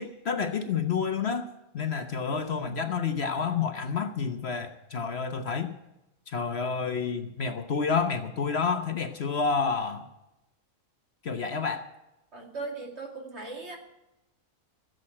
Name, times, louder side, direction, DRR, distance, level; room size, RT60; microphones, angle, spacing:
voice 1, 0.0-1.5 1.7-5.7 6.3-10.1 11.2-11.9, left 5 dB, 50° left, 8 dB, 1.1 m, -29 dB
voice 2, 12.3-13.8, right 3 dB, 50° right, 2 dB, 2.6 m, -38 dB
16.0 x 7.8 x 8.7 m, 0.92 s
omnidirectional pair, 1.5 m